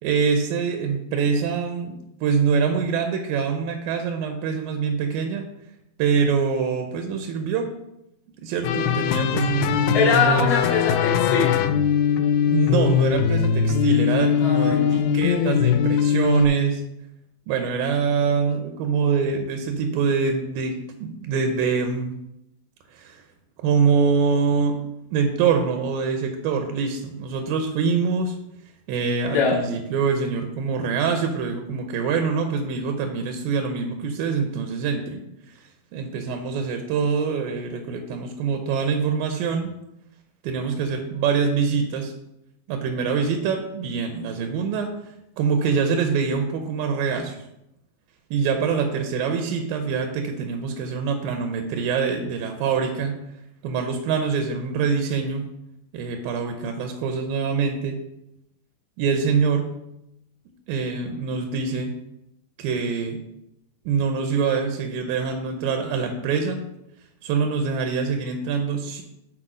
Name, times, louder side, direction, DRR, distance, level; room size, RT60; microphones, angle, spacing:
voice 1, 0.0-5.5 6.0-7.7 8.4-10.5 12.5-16.8 17.5-22.2 22.9-23.2 23.6-24.8 25.1-28.4 28.9-35.2 35.9-39.7 40.4-42.1 42.7-45.0 45.4-47.4 48.3-53.2 53.6-55.5 55.9-58.0 59.0-59.7 60.7-61.9 62.6-63.2 63.9-66.6 67.2-69.0, right 5 dB, 90° right, 5 dB, 2.5 m, -24 dB
sound 1, 8.6-16.5, left 8 dB, 80° left, 2.0 m, -21 dB
voice 2, 9.9-11.6 14.4-15.2 29.3-29.6, left 5 dB, 40° left, -6 dB, 0.5 m, -22 dB
8.8 x 4.3 x 5.0 m, 0.84 s
omnidirectional pair, 4.0 m